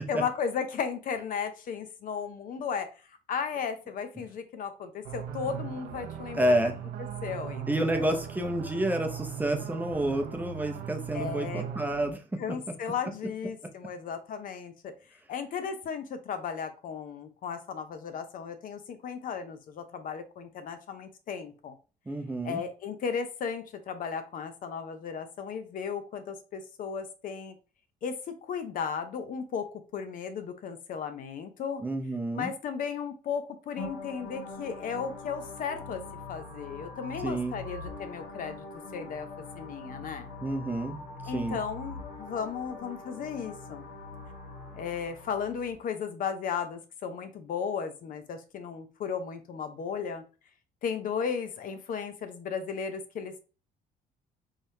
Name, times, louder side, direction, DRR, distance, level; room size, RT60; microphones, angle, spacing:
voice 1, 0.0-6.5 7.2-8.2 11.1-11.6 12.4-14.9 15.3-21.8 22.4-27.5 28.0-28.2 28.4-31.8 32.3-36.0 36.3-38.7 38.9-39.3 39.6-40.3 41.3-43.9 44.7-50.2 50.8-53.4, left 6 dB, 55° left, 9 dB, 0.6 m, -35 dB
sound 1, 5.0-12.1, right 8 dB, 90° right, 0.6 m, -39 dB
voice 2, 6.3-6.8 7.7-12.6 22.1-22.6 31.8-32.5 37.2-37.6 40.4-41.6, right 1 dB, 10° right, 4 dB, 0.6 m, -29 dB
sound 2, 33.8-45.7, left 3 dB, 75° left, 1.3 m, -43 dB
3.7 x 3.2 x 2.7 m, 0.34 s
cardioid pair, 110°, 17 cm